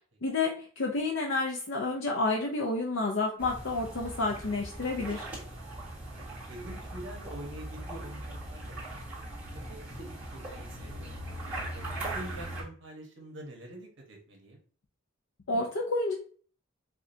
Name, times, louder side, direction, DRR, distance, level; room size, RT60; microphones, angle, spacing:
voice 1, 0.2-5.2 15.5-16.1, left 3 dB, 70° left, 0 dB, 0.6 m, -30 dB
sound 1, 3.4-12.6, right 1 dB, 10° right, 1.6 m, -40 dB
voice 2, 6.5-9.0 9.7-11.2 11.7-14.6, right 1 dB, 65° right, 1 dB, 1.1 m, -45 dB
4.9 x 2.3 x 2.6 m, 0.42 s
head